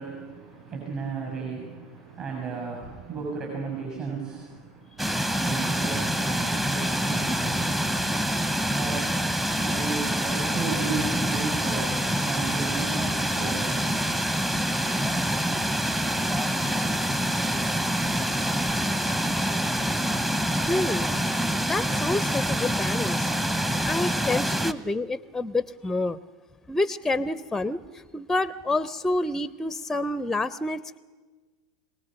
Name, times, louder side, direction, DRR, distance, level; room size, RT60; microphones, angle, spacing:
voice 1, 0.0-8.0 8.7-9.2 9.6-13.9, right 4 dB, 50° right, 0 dB, 6.6 m, -35 dB
sound 1, 5.0-24.7, equal, 10° right, 0.9 m, -26 dB
voice 2, 20.7-21.1 21.6-23.3 23.9-26.2 26.7-31.0, left 2 dB, 5° left, 16 dB, 0.5 m, -28 dB
22.5 x 18.0 x 6.4 m, 1.4 s
hypercardioid pair, 95°, 2 cm